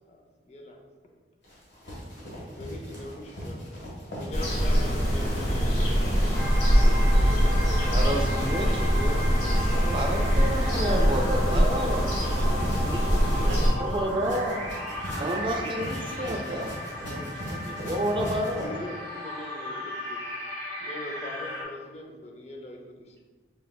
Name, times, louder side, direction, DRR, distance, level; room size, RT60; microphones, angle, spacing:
voice 1, 0.1-1.1 2.4-3.9 4.1-6.3 6.7-8.3 10.4-10.9 13.1-14.7 18.4-20.2 20.8-23.2, left 1 dB, 35° left, 1 dB, 0.5 m, -42 dB
sound 1, 1.4-18.7, equal, 75° left, 1.4 m, -39 dB
sound 2, 4.3-13.7, equal, 55° left, 1.2 m, -23 dB
sound 3, 6.3-21.6, left 1 dB, 10° left, 1.1 m, -36 dB
voice 2, 7.9-9.3 9.9-12.0 13.8-14.6 15.2-16.7 17.9-18.7, right 1 dB, 25° right, 2 dB, 0.3 m, -30 dB
voice 3, 9.6-10.0 10.9-11.1 11.5-11.6 12.4-13.0 13.4-13.6 15.1-15.4 16.2-16.6 17.1-17.8, right 2 dB, 65° right, 1 dB, 0.6 m, -38 dB
4.7 x 3.2 x 2.2 m, 1.4 s
head